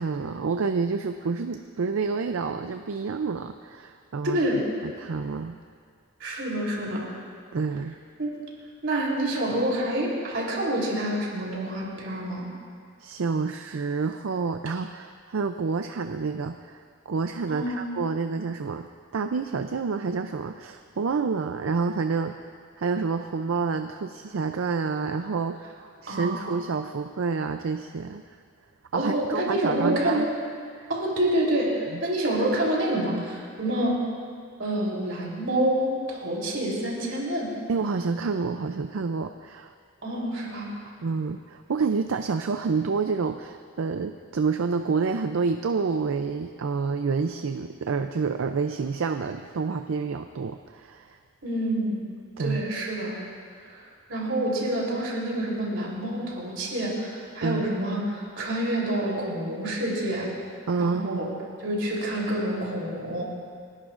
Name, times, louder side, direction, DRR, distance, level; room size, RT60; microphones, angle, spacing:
voice 1, 0.0-4.4 4.8-5.6 7.5-8.0 13.0-18.9 19.1-22.3 22.8-25.7 26.0-28.2 28.9-30.3 30.8-30.9 31.9-32.0 37.7-39.7 41.0-51.2 52.4-52.7 57.4-57.7 60.7-61.3, right 4 dB, 75° right, 7 dB, 0.5 m, -28 dB
voice 2, 4.2-4.7 6.2-7.1 8.2-8.3 8.8-12.5 17.5-17.8 26.1-26.5 28.9-30.3 30.9-34.0 34.6-37.5 40.0-40.7 51.4-52.0 52.4-53.2 54.1-60.3 60.8-61.3 61.6-63.2, right 1 dB, 60° right, -3 dB, 3.5 m, -27 dB
30.0 x 11.5 x 2.5 m, 2.1 s
head